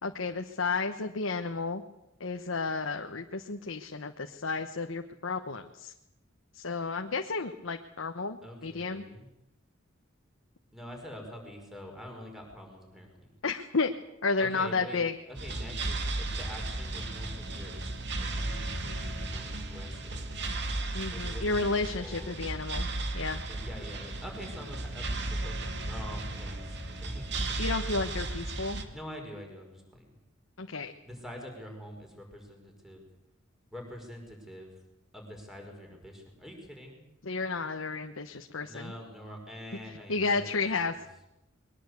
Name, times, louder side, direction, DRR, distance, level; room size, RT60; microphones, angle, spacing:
voice 1, 0.0-1.8 2.2-5.9 6.5-9.0 13.4-13.9 14.2-15.1 20.9-22.9 23.1-23.4 27.6-28.8 30.6-30.9 37.2-38.9 40.1-40.9, left 4 dB, 85° left, 5 dB, 1.2 m, -32 dB
voice 2, 8.4-9.3 10.7-13.3 14.4-15.0 15.3-16.0 16.4-20.3 21.1-22.6 23.5-27.6 28.9-30.1 31.0-33.1 33.7-34.7 35.1-37.0 38.6-41.0, equal, ahead, 2 dB, 5.3 m, -45 dB
sound 1, 15.4-28.8, right 2 dB, 60° right, 2.4 m, -35 dB
22.5 x 19.0 x 8.2 m, 0.89 s
head